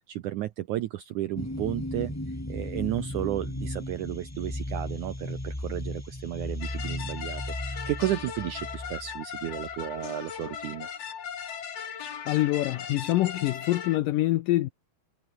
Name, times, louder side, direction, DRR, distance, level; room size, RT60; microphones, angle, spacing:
voice 1, 0.1-2.1 2.5-10.9, right 14 dB, 80° right, 1.7 m, -33 dB
sound 1, 1.4-9.9, left 1 dB, 5° left, 1.5 m, -36 dB
sound 2, 6.6-14.0, left 8 dB, 45° left, 2.7 m, -38 dB
voice 2, 12.3-14.7, left 16 dB, 80° left, 2.0 m, -25 dB
omnidirectional pair, 4.6 m